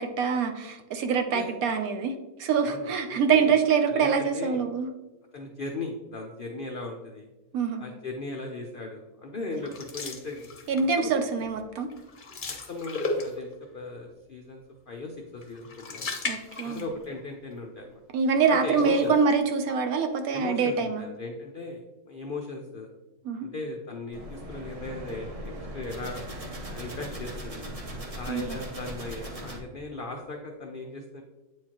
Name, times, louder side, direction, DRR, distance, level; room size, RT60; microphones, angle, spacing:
voice 1, 0.0-4.9 7.5-7.8 10.7-11.9 16.2-16.8 18.1-21.0 23.2-23.5 28.3-28.6, right 5 dB, 70° right, 7 dB, 1.0 m, -25 dB
voice 2, 2.6-3.5 3.9-4.6 5.3-7.3 7.8-10.5 10.7-11.1 12.7-14.6 14.9-16.1 16.6-18.0 18.5-19.1 20.3-22.9 23.4-26.2 26.7-27.7 28.1-31.2, left 2 dB, 70° left, 2 dB, 0.5 m, -37 dB
sound 1, 9.6-11.0 11.4-11.6 11.9-13.6 15.4-17.2 17.5-17.6 18.5-19.3, left 3 dB, 40° left, 0.7 m, -36 dB
sound 2, 24.1-29.6, right 1 dB, 30° right, 0.8 m, -39 dB
8.5 x 4.6 x 2.9 m, 1.1 s
omnidirectional pair, 1.7 m